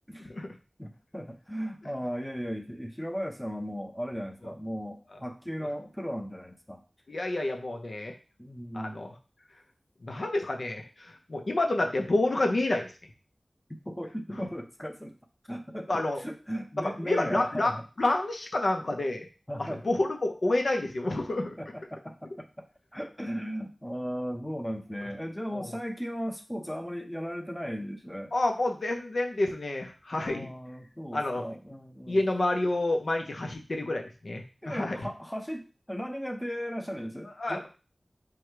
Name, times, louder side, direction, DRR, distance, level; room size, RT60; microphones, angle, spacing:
voice 1, 0.8-6.8 8.4-9.1 13.9-15.2 15.5-17.8 19.5-19.9 21.6-22.6 22.9-28.3 30.1-32.2 34.6-37.7, equal, 10° left, 3 dB, 0.8 m, -36 dB
voice 2, 7.1-8.2 8.7-9.1 10.0-12.9 15.9-16.2 16.8-17.7 18.0-19.3 19.6-21.6 25.5-25.7 28.3-30.5 31.1-31.4 32.1-35.1 37.4-37.7, left 2 dB, 70° left, 3 dB, 0.8 m, -29 dB
4.8 x 2.4 x 4.6 m, 0.33 s
wide cardioid pair, 60°, 0 cm